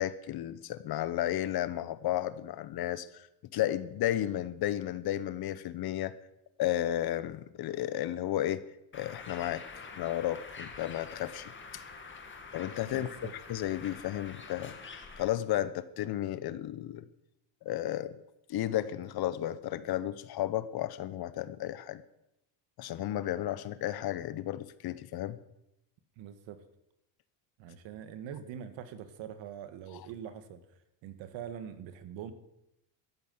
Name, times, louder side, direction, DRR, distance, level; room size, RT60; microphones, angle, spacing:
voice 1, 0.0-3.3 3.5-6.1 6.6-8.6 8.9-9.6 10.0-11.5 12.5-13.2 13.5-14.8 15.2-17.1 17.6-18.2 18.5-22.0 22.8-25.4, left 13 dB, 50° left, 15 dB, 1.0 m, -33 dB
Bird, 8.9-15.2, left 4 dB, 25° left, 2.2 m, -47 dB
voice 2, 12.9-13.3 26.2-26.6 27.6-30.6 31.0-32.3, right 9 dB, 65° right, 10 dB, 1.8 m, -43 dB
13.5 x 10.0 x 8.0 m, 0.86 s
supercardioid pair, 115°, 50 cm